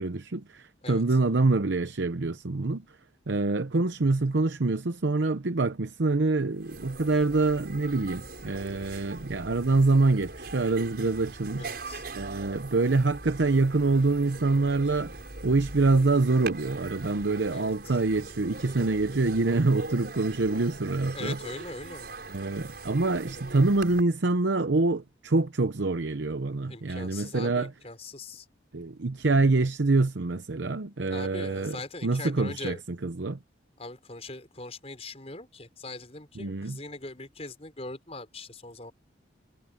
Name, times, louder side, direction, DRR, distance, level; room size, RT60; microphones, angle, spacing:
voice 1, 0.0-2.8 3.3-11.7 12.1-15.1 15.4-21.4 22.3-27.7 28.7-31.8 32.0-32.8 33.0-33.4 36.4-36.8, right 3 dB, 80° right, 0.8 m, -25 dB
voice 2, 0.8-1.2 11.6-12.0 17.5-18.0 21.1-22.0 26.7-28.5 31.1-32.8 33.8-38.9, left 2 dB, 35° left, 5.4 m, -41 dB
sound 1, 6.5-24.0, right 3 dB, 55° right, 6.7 m, -41 dB
head